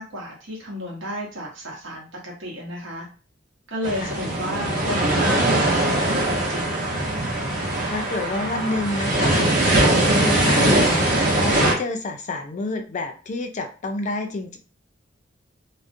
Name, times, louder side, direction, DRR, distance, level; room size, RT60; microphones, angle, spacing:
voice 1, 0.0-3.1 3.7-7.0, equal, 80° right, -2 dB, 0.9 m, -32 dB
sound 1, 3.8-11.7, right 1 dB, 45° right, 0.8 m, -21 dB
voice 2, 7.9-9.5 9.8-14.6, left 2 dB, 40° left, 5 dB, 0.3 m, -29 dB
2.4 x 2.1 x 2.5 m, 0.36 s
head